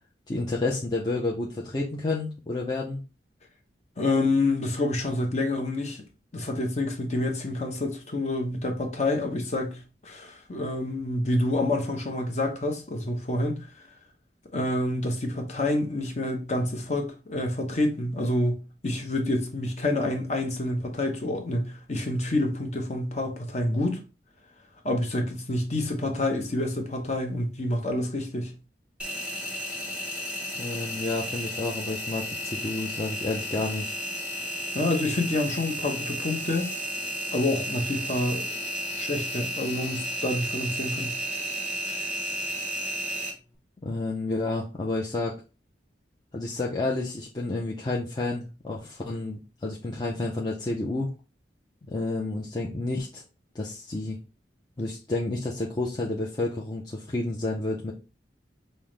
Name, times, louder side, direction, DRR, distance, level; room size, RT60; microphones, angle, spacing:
voice 1, 0.3-3.0 30.5-33.9 43.8-45.3 46.3-51.1 51.9-53.2 53.5-54.2 54.8-57.9, left 2 dB, 25° left, 0.5 m, -30 dB
voice 2, 4.0-6.0 6.3-13.7 14.5-24.0 24.8-28.5 34.7-36.7 37.3-38.5 38.9-41.2, left 2 dB, 40° left, 0.8 m, -28 dB
Engine, 29.0-43.3, equal, 5° right, 1.0 m, -33 dB
5.4 x 2.1 x 3.1 m
head